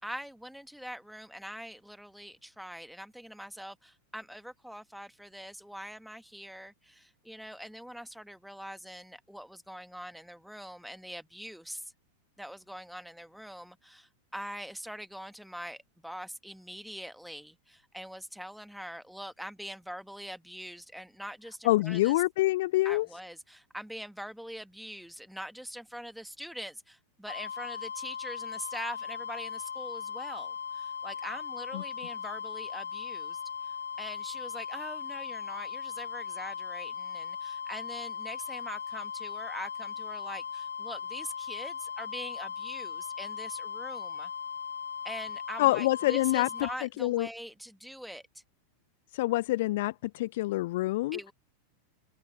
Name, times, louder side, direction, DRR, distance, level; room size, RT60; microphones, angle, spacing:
voice 1, 0.0-11.9 12.4-22.1 22.8-44.3 45.0-48.4 51.1-51.3, equal, ahead, 2.0 m, -43 dB
voice 2, 21.6-23.1 31.7-31.8 45.6-47.3 49.1-51.2, left 18 dB, 50° left, 0.3 m, -26 dB
sound 1, 27.3-46.8, left 7 dB, 70° left, 2.1 m, -38 dB
figure-of-eight pair, 90°, 0 cm